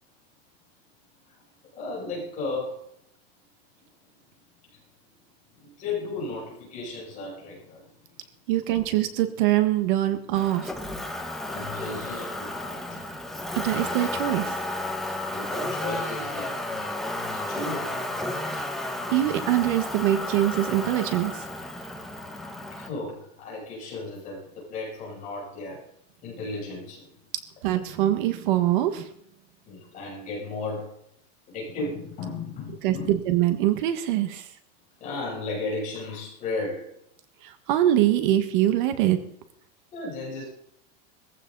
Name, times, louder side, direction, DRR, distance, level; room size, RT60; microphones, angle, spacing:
voice 1, 1.7-2.8 4.7-4.8 5.5-7.9 11.4-13.0 15.3-17.0 17.3-18.1 22.7-25.9 26.2-27.1 29.6-31.0 31.5-33.1 35.0-36.9 39.9-40.4, left 3 dB, 25° left, -4 dB, 6.9 m, -35 dB
voice 2, 8.5-10.7 13.6-14.5 19.1-21.3 27.6-29.1 32.8-34.4 37.4-39.2, right 13 dB, 50° right, 9 dB, 1.5 m, -23 dB
Motor vehicle (road), 10.3-22.9, left 1 dB, ahead, 1.0 m, -32 dB
19.5 x 15.0 x 4.0 m, 0.70 s
supercardioid pair, 180°, 32 cm